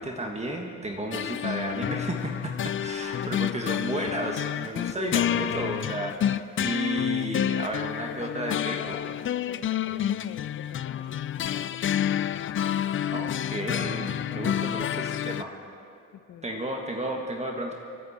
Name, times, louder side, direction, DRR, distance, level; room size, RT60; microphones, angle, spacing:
voice 1, 0.0-9.0 13.1-15.5 16.4-17.7, right 1 dB, 20° right, 1 dB, 1.7 m, -33 dB
sound 1, 1.1-15.4, left 10 dB, 40° left, 0.5 m, -29 dB
voice 2, 3.2-3.6 4.8-5.6 8.0-11.2 11.5-12.7 16.1-16.6, left 9 dB, 75° left, 8 dB, 1.2 m, -43 dB
27.5 x 9.8 x 4.3 m, 2.4 s
cardioid pair, 90°, 30 cm